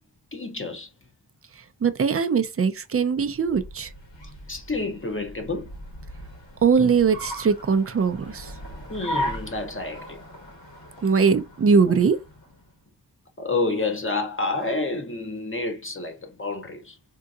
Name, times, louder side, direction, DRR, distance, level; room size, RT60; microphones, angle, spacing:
voice 1, 0.3-0.9 4.5-5.7 8.9-10.2 13.4-17.0, left 3 dB, 30° left, 0.6 m, -29 dB
voice 2, 1.6-3.9 6.6-8.5 11.0-12.2, right 5 dB, 35° right, 0.4 m, -21 dB
Car, 3.2-12.7, equal, 80° left, 1.3 m, -37 dB
3.7 x 2.7 x 2.3 m
wide cardioid pair, 85°, 43 cm